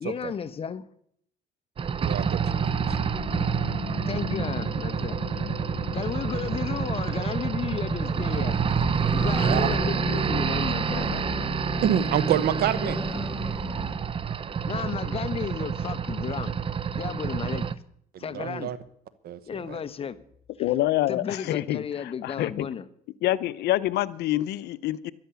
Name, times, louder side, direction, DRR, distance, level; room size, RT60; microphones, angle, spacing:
voice 1, 0.0-0.8 4.1-5.2 5.9-8.6 9.1-11.2 14.7-16.6 16.9-17.7 18.2-18.7 19.5-20.2 21.1-22.9, left 7 dB, 35° left, 1.0 m, -33 dB
sound 1, 1.8-17.7, right 6 dB, 30° right, 0.6 m, -28 dB
voice 2, 2.0-3.0 9.4-9.7 11.8-13.0 18.3-18.8 19.2-19.8, right 10 dB, 65° right, 1.1 m, -27 dB
sound 2, 2.4-12.0, left 9 dB, 60° left, 1.6 m, -39 dB
sound 3, 8.0-14.0, left 1 dB, 5° right, 1.8 m, -35 dB
voice 3, 20.6-22.7 23.2-25.1, left 15 dB, 75° left, 0.7 m, -26 dB
13.0 x 11.5 x 7.0 m
cardioid pair, 110°, 17 cm